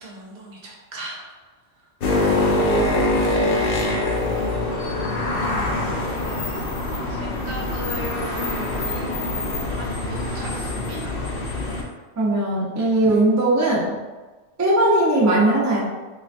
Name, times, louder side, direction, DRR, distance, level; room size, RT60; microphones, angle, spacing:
voice 1, 0.0-1.4 3.0-3.4 7.1-11.1 12.8-13.2, right 1 dB, 60° right, -3 dB, 0.8 m, -38 dB
sound 1, 2.0-11.8, left 2 dB, 60° left, 0.7 m, -24 dB
voice 2, 12.2-13.9 14.6-15.8, right 1 dB, 25° right, -5 dB, 0.3 m, -19 dB
3.9 x 2.2 x 2.4 m, 1.3 s
omnidirectional pair, 1.2 m